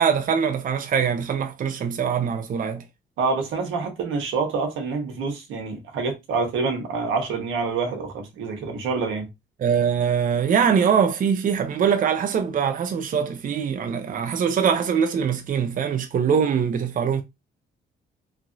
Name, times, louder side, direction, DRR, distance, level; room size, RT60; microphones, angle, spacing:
voice 1, 0.0-2.8 9.6-17.2, right 7 dB, 45° right, 0.5 m, -22 dB
voice 2, 3.2-9.3, right 4 dB, 85° right, 1.0 m, -27 dB
2.9 x 2.5 x 2.5 m
cardioid pair, 90°, 20 cm